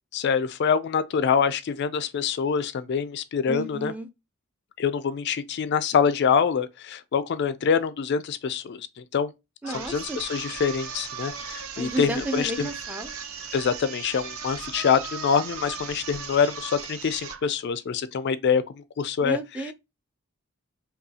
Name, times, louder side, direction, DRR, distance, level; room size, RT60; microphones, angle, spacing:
voice 1, 0.1-3.9 4.8-9.3 9.7-12.7 13.5-19.4, left 6 dB, 55° left, 0.4 m, -25 dB
voice 2, 3.5-4.1 9.6-10.2 11.8-13.2 19.2-19.7, right 1 dB, 5° right, 0.4 m, -32 dB
sound 1, 9.6-17.5, right 6 dB, 85° right, 0.7 m, -37 dB
5.3 x 2.3 x 2.7 m
head